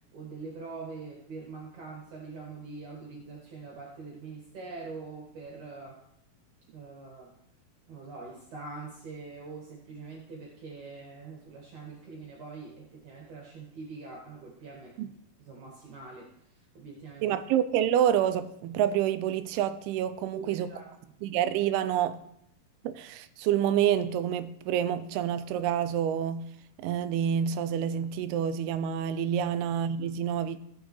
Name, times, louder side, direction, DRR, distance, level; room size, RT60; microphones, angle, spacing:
voice 1, 0.1-6.0 6.7-7.3 7.9-15.1 15.4-16.3 16.7-17.4 20.3-20.9 29.4-29.5, right 4 dB, 60° right, 2.7 m, -43 dB
voice 2, 17.2-20.7 21.2-22.2 22.8-26.5 26.8-30.6, right 9 dB, 90° right, 2.6 m, -28 dB
17.5 x 6.3 x 3.2 m
omnidirectional pair, 4.4 m